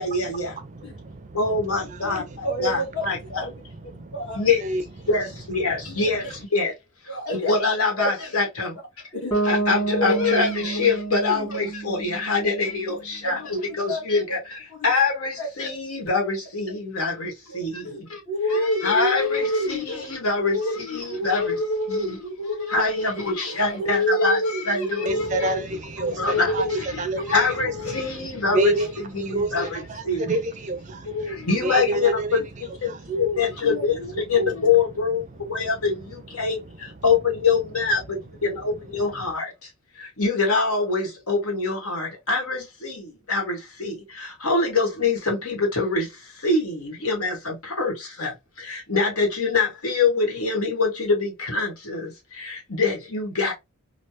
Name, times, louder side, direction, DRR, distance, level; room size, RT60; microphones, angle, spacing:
voice 1, 0.0-0.6 1.3-3.4 4.3-4.6 5.1-6.7 7.1-8.8 9.4-18.2 18.5-21.5 21.9-22.2 22.7-25.5 26.0-27.0 27.3-28.8 29.1-30.3 31.3-32.4 32.8-33.9 34.3-39.7 39.9-53.5, left 4 dB, 85° left, 1.4 m, -25 dB
voice 2, 0.5-2.4 3.6-4.8 25.1-28.0 28.5-32.4 32.9-33.1 35.6-35.7 39.2-39.3, right 2 dB, 35° right, 0.4 m, -29 dB
voice 3, 2.0-3.5 4.1-4.5 6.0-6.1 7.1-7.6 8.0-8.1 9.1-9.6 9.9-10.8 11.4-11.5 12.4-12.5 13.2-14.0 14.3-14.4 14.7-14.9 15.4-15.5 17.5-18.0 18.3-20.0 20.4-25.6 26.1-28.0 28.5-28.9 29.3-29.4 30.0-30.2 31.0-31.5 33.1-34.7, left 1 dB, 55° left, 1.4 m, -28 dB
Bass guitar, 9.3-13.2, right 3 dB, 20° left, 1.6 m, -29 dB
3.2 x 2.3 x 2.9 m
head